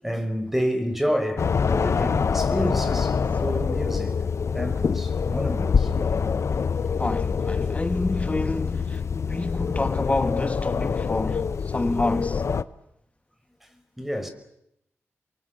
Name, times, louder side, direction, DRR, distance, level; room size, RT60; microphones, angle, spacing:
voice 1, 0.0-4.3 4.5-5.9 6.8-6.9 13.6-14.3, equal, 5° right, 5.3 m, -29 dB
sound 1, 1.4-12.6, left 6 dB, 70° left, 1.0 m, -25 dB
voice 2, 7.0-12.5, left 2 dB, 25° left, 2.0 m, -28 dB
29.5 x 23.5 x 7.7 m
cardioid pair, 65°, 5 cm